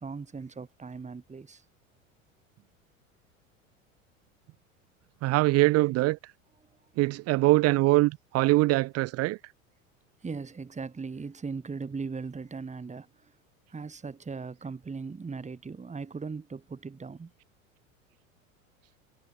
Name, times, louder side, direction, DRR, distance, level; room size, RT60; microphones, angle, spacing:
voice 1, 0.0-1.6 10.2-13.3 13.7-17.3, right 4 dB, 15° right, 4.6 m, -38 dB
voice 2, 5.2-6.2 7.0-9.4, right 20 dB, 40° right, 0.7 m, -23 dB
figure-of-eight pair, 80°, 40 cm